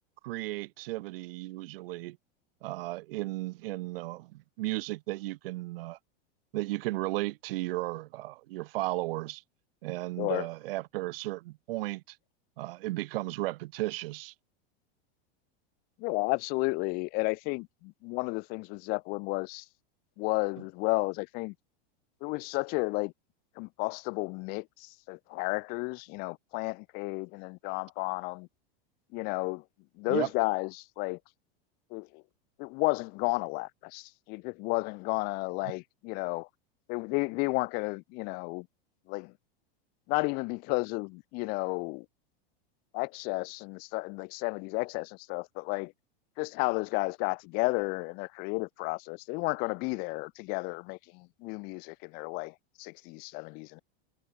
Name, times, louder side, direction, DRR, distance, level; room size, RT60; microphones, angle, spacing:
voice 1, 0.2-2.2 2.6-6.0 6.5-9.4 9.8-12.2 12.6-14.3 30.1-30.3 35.6-35.7, right 19 dB, 65° right, 0.6 m, -35 dB
voice 2, 16.0-19.6 20.2-21.5 22.2-23.1 23.6-28.5 29.1-29.6 30.0-31.2 31.9-32.2 32.6-36.5 36.9-38.7 39.1-39.3 40.1-42.1 42.9-45.9 46.4-53.8, left 29 dB, 30° left, 0.7 m, -32 dB
supercardioid pair, 170°, 32 cm